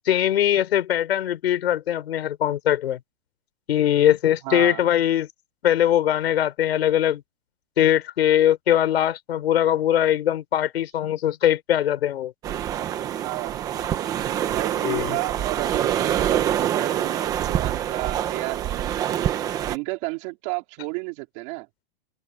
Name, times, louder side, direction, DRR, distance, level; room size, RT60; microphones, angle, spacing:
voice 1, 0.0-3.0 3.7-5.3 5.6-7.2 7.8-12.3 14.8-15.2, left 11 dB, 80° left, 5.2 m, -21 dB
voice 2, 4.4-4.9 13.2-13.6 14.5-19.2 19.7-21.7, right 26 dB, 30° right, 3.3 m, -32 dB
sound 1, 12.4-19.8, right 10 dB, 10° right, 0.8 m, -25 dB
supercardioid pair, 180°, 31 cm